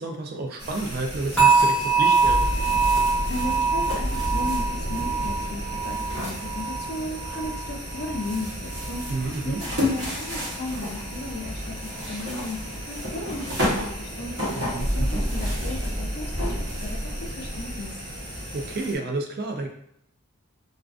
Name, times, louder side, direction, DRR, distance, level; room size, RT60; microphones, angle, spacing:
voice 1, 0.0-2.4 9.1-9.6 14.5-15.2 18.5-19.7, right 3 dB, 45° right, 3 dB, 0.3 m, -30 dB
sound 1, 0.6-19.0, left 1 dB, 60° right, 0.8 m, -33 dB
sound 2, 1.4-8.4 8.7-9.1 9.6-9.7, right 4 dB, 5° left, 0.7 m, -24 dB
sound 3, 2.2-18.7, equal, 25° right, 0.8 m, -33 dB
voice 2, 3.3-18.0, left 2 dB, 45° left, 2 dB, 0.4 m, -36 dB
2.4 x 2.3 x 2.3 m, 0.73 s
head